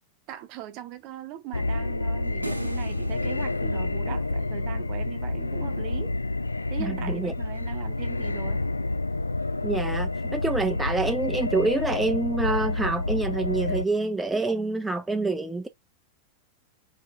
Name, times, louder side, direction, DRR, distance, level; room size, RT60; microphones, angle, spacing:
voice 1, 0.3-6.1 6.7-8.7, right 13 dB, 40° right, 0.8 m, -39 dB
sound 1, 1.5-13.8, left 2 dB, 80° left, 0.3 m, -29 dB
sound 2, 2.4-4.8, right 1 dB, 85° right, 0.6 m, -39 dB
voice 2, 6.8-7.3 9.6-15.7, right 3 dB, 5° right, 0.6 m, -27 dB
3.7 x 3.7 x 2.3 m
figure-of-eight pair, 90°, 0 cm